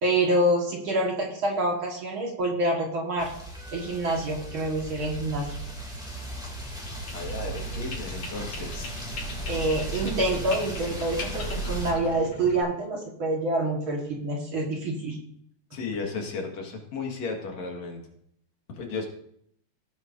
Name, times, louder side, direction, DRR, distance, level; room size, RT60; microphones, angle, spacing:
voice 1, 0.0-3.3 3.7-5.6 9.5-15.2, right 1 dB, 50° right, 0 dB, 2.0 m, -27 dB
sound 1, 3.2-11.9, right 2 dB, ahead, 2.0 m, -36 dB
sound 2, 7.1-12.6, left 3 dB, 90° left, 4.6 m, -39 dB
voice 2, 7.1-8.9 15.7-18.0 18.8-19.1, left 4 dB, 70° left, 1 dB, 2.9 m, -34 dB
17.0 x 8.7 x 2.6 m, 0.70 s
omnidirectional pair, 3.3 m